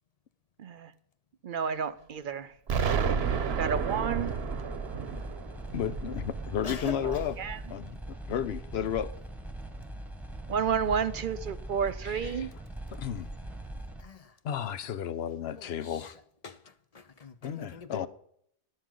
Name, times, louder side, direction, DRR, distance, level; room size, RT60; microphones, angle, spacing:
voice 1, 0.6-0.9 1.4-2.5 3.6-4.3 7.0-7.6 10.5-12.5, right 7 dB, 60° right, 0.7 m, -31 dB
sound 1, 2.7-14.0, right 1 dB, ahead, 1.1 m, -41 dB
Explosion, 2.7-7.5, right 6 dB, 75° right, 1.1 m, -31 dB
voice 2, 5.7-7.4 7.7-8.0 8.2-9.1 12.0-12.5 13.0-13.3 14.4-16.1 17.4-18.1, left 9 dB, 80° left, 0.9 m, -33 dB
voice 3, 6.6-7.2 14.0-14.3 15.6-16.1 16.4-18.1, left 4 dB, 40° left, 0.7 m, -43 dB
12.0 x 10.5 x 3.8 m
omnidirectional pair, 1.1 m